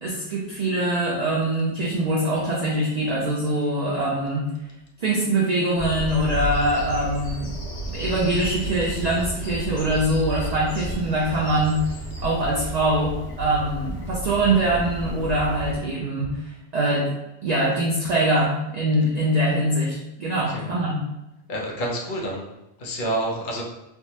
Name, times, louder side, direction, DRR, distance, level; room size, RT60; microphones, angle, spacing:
voice 1, 0.0-4.5 5.0-7.5 7.9-11.8 12.2-17.1 17.4-21.0, right 1 dB, 55° right, -4 dB, 0.4 m, -23 dB
Bird vocalization bird call bird song, 5.8-15.8, right 1 dB, 80° left, 1.1 m, -32 dB
voice 2, 21.5-22.4 22.8-23.6, right 1 dB, 50° left, -1 dB, 0.7 m, -28 dB
3.4 x 2.0 x 2.8 m, 0.94 s
omnidirectional pair, 1.2 m